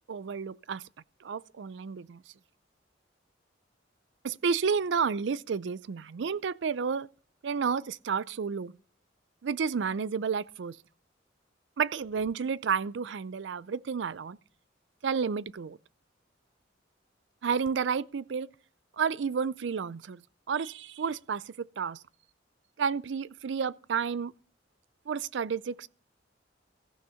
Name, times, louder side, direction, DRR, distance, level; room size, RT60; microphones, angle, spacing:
voice 1, 0.1-0.8 1.2-2.2 4.2-7.1 7.4-8.7 9.4-10.8 11.8-14.4 15.0-15.8 17.4-18.5 19.0-20.2 20.5-22.0 22.8-24.3 25.1-25.9, right 6 dB, 70° right, 0.4 m, -31 dB
15.0 x 6.4 x 5.6 m
head